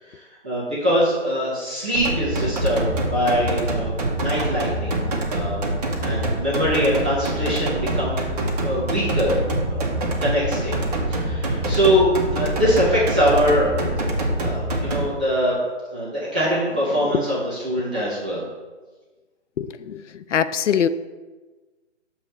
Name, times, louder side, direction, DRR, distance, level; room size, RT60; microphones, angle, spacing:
voice 1, 0.4-5.0 5.3-5.6 6.0-8.2 8.6-9.9 10.2-10.8 11.1-13.9 14.4-15.6 15.9-18.4, equal, 5° right, -10 dB, 0.5 m, -23 dB
sound 1, 1.9-15.0, right 1 dB, 35° right, 1.0 m, -25 dB
voice 2, 19.6-20.9, left 8 dB, 75° left, 13 dB, 0.5 m, -23 dB
6.9 x 3.2 x 5.8 m, 1.3 s
figure-of-eight pair, 150°, 36 cm